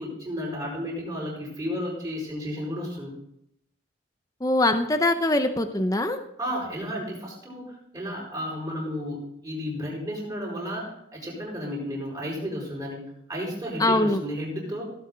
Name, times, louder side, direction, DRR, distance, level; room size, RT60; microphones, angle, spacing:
voice 1, 0.0-3.1 6.4-13.0 13.3-14.9, equal, 20° right, -3 dB, 4.9 m, -33 dB
voice 2, 4.4-6.2 13.8-14.2, left 2 dB, 15° left, 7 dB, 0.7 m, -22 dB
17.0 x 8.0 x 3.9 m, 0.78 s
head